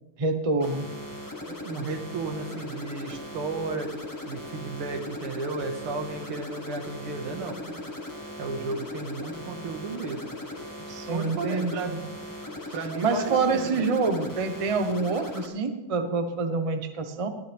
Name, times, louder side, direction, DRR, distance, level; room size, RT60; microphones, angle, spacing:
voice 1, 0.2-0.9 10.9-12.0 13.0-17.3, right 4 dB, 35° right, 7 dB, 0.5 m, -27 dB
sound 1, 0.6-15.5, left 1 dB, 15° left, 0.9 m, -39 dB
voice 2, 1.5-3.9 4.3-7.8 8.4-10.2 11.1-12.1 12.7-13.8, right 3 dB, 80° right, 5 dB, 2.5 m, -33 dB
20.0 x 14.0 x 3.5 m, 1.1 s
omnidirectional pair, 2.4 m